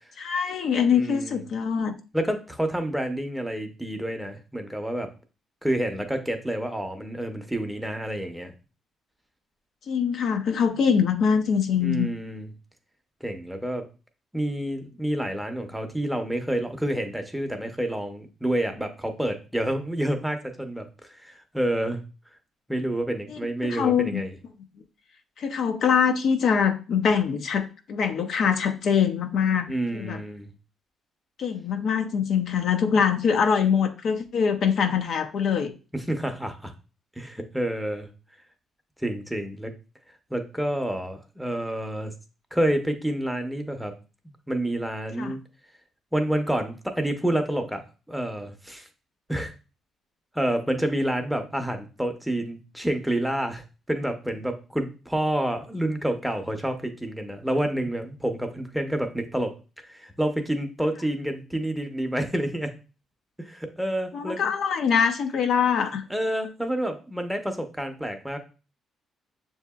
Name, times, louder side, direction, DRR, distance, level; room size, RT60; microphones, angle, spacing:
voice 1, 0.2-1.9 9.9-12.1 23.3-23.4 23.7-24.2 25.4-29.7 29.9-30.2 31.4-35.7 45.2-45.3 64.1-66.0, left 7 dB, 65° left, 6 dB, 0.5 m, -23 dB
voice 2, 0.9-1.4 2.1-5.1 5.6-8.5 11.8-12.5 13.2-13.9 14.3-20.9 21.2-22.0 22.7-24.3 29.7-30.5 35.9-36.7 37.2-38.1 39.0-39.7 40.3-42.1 42.5-43.9 44.5-45.4 46.1-48.9 49.3-49.5 50.3-53.6 53.9-59.5 59.9-62.7 63.4-64.5 66.1-68.4, right 1 dB, 5° right, 5 dB, 0.7 m, -28 dB
6.4 x 2.8 x 2.3 m, 0.33 s
cardioid pair, 90°, 0 cm